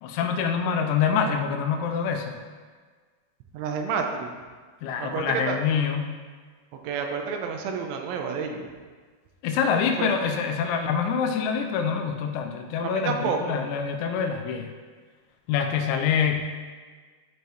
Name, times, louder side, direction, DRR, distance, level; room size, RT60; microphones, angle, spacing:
voice 1, 0.0-2.4 4.8-6.1 9.4-14.7 15.5-16.4, left 6 dB, 85° left, 5 dB, 2.9 m, -25 dB
voice 2, 3.5-4.3 5.0-5.6 6.8-8.7 10.0-10.1 12.8-13.6, right 6 dB, 85° right, 3 dB, 3.2 m, -29 dB
13.0 x 5.4 x 3.1 m, 1.5 s
omnidirectional pair, 5.4 m